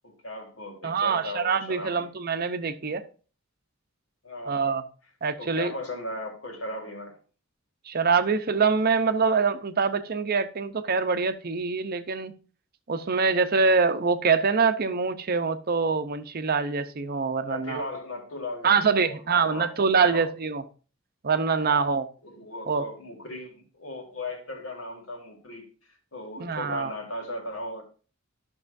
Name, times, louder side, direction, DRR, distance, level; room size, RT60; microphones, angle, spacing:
voice 1, 0.0-2.1 4.2-4.8 5.4-7.2 17.4-20.2 21.6-21.8 22.2-27.8, left 1 dB, 75° left, 2.3 m, -37 dB
voice 2, 0.8-3.0 4.5-4.8 5.2-5.7 7.9-12.3 12.9-17.8 18.6-20.6 21.2-22.0 22.7-22.8 26.4-26.9, right 5 dB, 50° right, 0.7 m, -24 dB
12.0 x 6.2 x 2.6 m
head